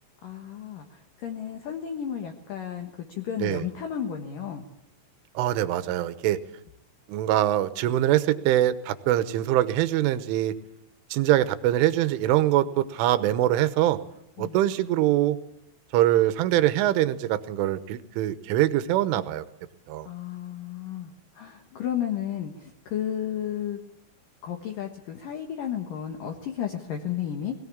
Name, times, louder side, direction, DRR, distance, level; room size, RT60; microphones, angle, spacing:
voice 1, 0.2-0.9 1.2-4.6 14.4-14.6 20.0-23.8 24.4-27.5, left 9 dB, 60° left, 4 dB, 2.5 m, -33 dB
voice 2, 5.4-6.4 7.1-10.5 11.1-14.0 14.4-15.4 15.9-19.5 19.9-20.1, right 13 dB, 85° right, 13 dB, 3.5 m, -23 dB
21.5 x 17.5 x 8.6 m, 0.81 s
omnidirectional pair, 5.5 m